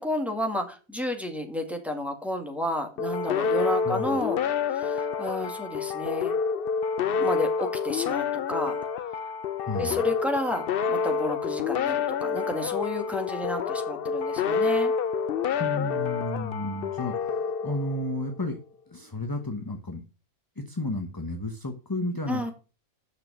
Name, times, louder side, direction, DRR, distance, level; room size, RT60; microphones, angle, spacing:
voice 1, 0.0-4.4 4.7-6.3 7.2-8.9 9.8-14.9 22.3-22.5, left 1 dB, ahead, 3 dB, 1.9 m, -31 dB
sound 1, 3.0-18.3, left 6 dB, 55° left, 0.6 m, -28 dB
voice 2, 3.8-4.2 9.7-10.0 15.6-18.6 18.9-20.0 20.6-22.5, left 2 dB, 15° left, 5 dB, 0.9 m, -32 dB
9.6 x 6.6 x 6.1 m, 0.34 s
omnidirectional pair, 1.5 m